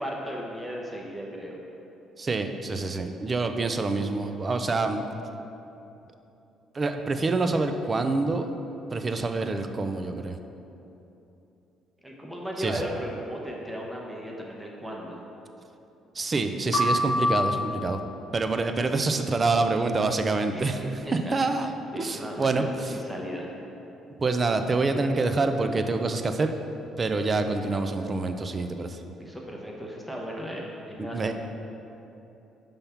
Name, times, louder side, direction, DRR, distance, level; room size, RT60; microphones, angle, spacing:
voice 1, 0.0-1.6 12.0-15.2 20.5-20.7 21.0-21.3 21.9-23.5 29.2-31.3, equal, 5° right, -2 dB, 0.8 m, -36 dB
voice 2, 2.2-5.1 6.7-8.5 8.9-10.4 12.6-12.8 16.1-18.0 18.3-20.8 21.1-21.7 22.0-22.9 24.2-26.5 27.0-29.0 31.0-31.3, right 3 dB, 30° right, 7 dB, 0.4 m, -26 dB
sound 1, 16.7-18.0, left 2 dB, 85° left, 1.0 m, -25 dB
5.5 x 3.5 x 5.7 m, 3.0 s
cardioid pair, 90°, 0 cm